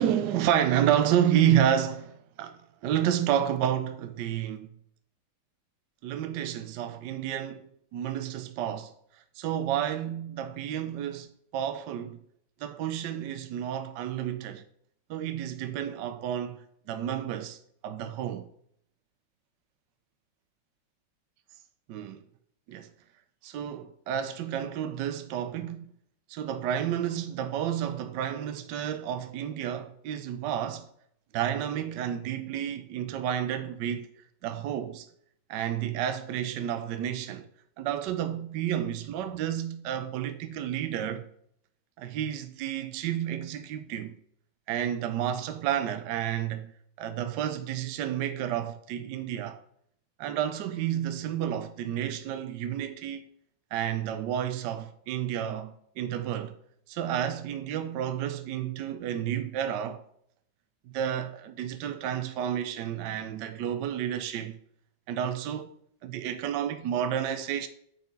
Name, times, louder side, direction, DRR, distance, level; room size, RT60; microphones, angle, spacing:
voice 1, 0.0-4.7 6.0-8.9 9.4-12.2 12.6-14.6 15.1-17.6 17.8-18.5 21.9-22.2 22.7-22.9 23.4-25.9 26.3-30.9 31.3-34.1 34.4-35.1 35.5-37.5 37.8-41.3 42.0-44.1 44.7-46.7 47.0-49.6 50.2-53.2 53.7-56.6 56.9-60.0 60.9-64.5 65.1-65.7 66.0-67.7, right 10 dB, 70° right, 1.2 m, -30 dB
8.3 x 4.1 x 5.2 m
omnidirectional pair, 2.1 m